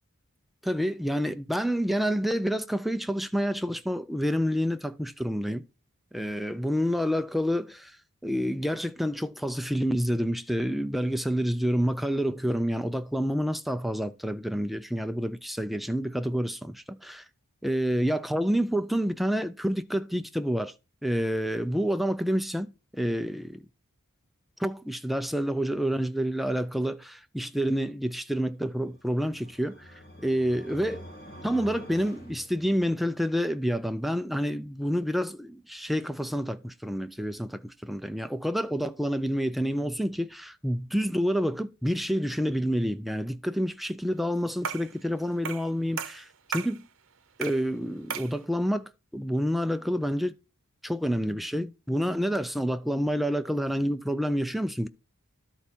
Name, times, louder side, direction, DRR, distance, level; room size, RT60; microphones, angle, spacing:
voice 1, 0.6-5.6 6.1-17.3 17.6-20.7 21.0-23.7 24.6-31.0 31.4-46.9 47.4-50.3 50.8-54.9, equal, ahead, 0.3 m, -28 dB
sound 1, 28.8-33.1, equal, 45° left, 2.0 m, -47 dB
sound 2, 44.6-45.0 45.5-45.7 46.0-46.8 47.4-47.7 48.1-48.4, right 7 dB, 60° right, 0.8 m, -35 dB
12.5 x 4.5 x 4.3 m
head